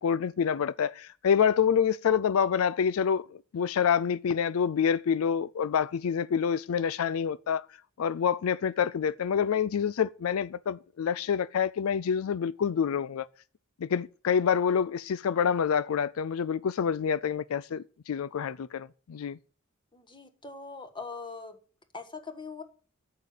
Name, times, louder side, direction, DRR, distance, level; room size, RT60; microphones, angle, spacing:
voice 1, 0.0-3.2 3.5-7.6 8.0-13.3 13.8-19.4, left 7 dB, 90° left, 0.4 m, -27 dB
voice 2, 19.9-21.6 21.9-22.6, left 4 dB, 25° left, 1.5 m, -41 dB
8.7 x 6.7 x 8.3 m
head